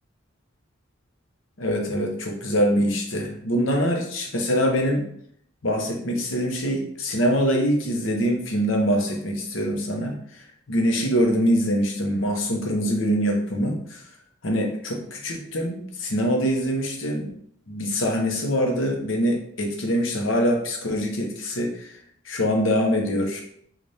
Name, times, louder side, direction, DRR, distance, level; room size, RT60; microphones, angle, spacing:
voice 1, 1.6-5.0 5.6-14.0 14.4-17.3 17.7-21.9 22.2-23.4, equal, 75° left, 2 dB, 0.8 m, -24 dB
4.0 x 2.5 x 3.3 m, 0.66 s
head